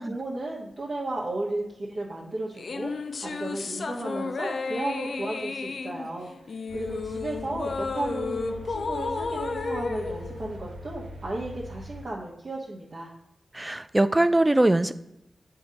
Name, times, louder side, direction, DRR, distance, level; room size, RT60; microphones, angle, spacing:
voice 1, 0.0-2.9 3.2-6.3 6.7-13.1, right 2 dB, 55° right, -6 dB, 1.2 m, -34 dB
sound 1, 2.6-11.2, left 4 dB, 70° left, 0.4 m, -33 dB
sound 2, 6.7-12.0, equal, 85° right, 0.7 m, -42 dB
voice 2, 13.5-14.9, right 1 dB, 25° right, 13 dB, 0.4 m, -22 dB
7.8 x 2.9 x 5.0 m, 0.84 s
cardioid pair, 55°, 0 cm